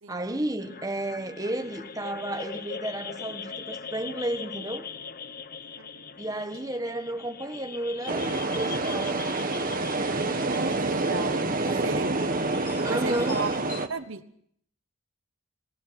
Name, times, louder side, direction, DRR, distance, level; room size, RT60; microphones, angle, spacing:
voice 1, 0.1-4.9 6.2-9.5 11.5-11.9 12.8-13.5, right 1 dB, 15° right, 1.3 m, -32 dB
sound 1, 0.6-13.6, left 5 dB, 40° left, 1.0 m, -41 dB
sound 2, 5.5-5.6 6.0-6.1 6.5-6.8 7.4-7.6 7.9-8.6 9.6-9.7 10.0-10.2 10.7-11.0 11.3-11.4 12.1-12.2 12.6-13.9, left 5 dB, 60° left, 5.2 m, -48 dB
voice 2, 5.8-6.1 10.4-12.1 12.9-13.5 13.9-14.2, right 4 dB, 60° right, 0.9 m, -34 dB
sound 3, 8.1-13.9, right 2 dB, 40° right, 1.3 m, -28 dB
26.5 x 19.5 x 5.8 m
head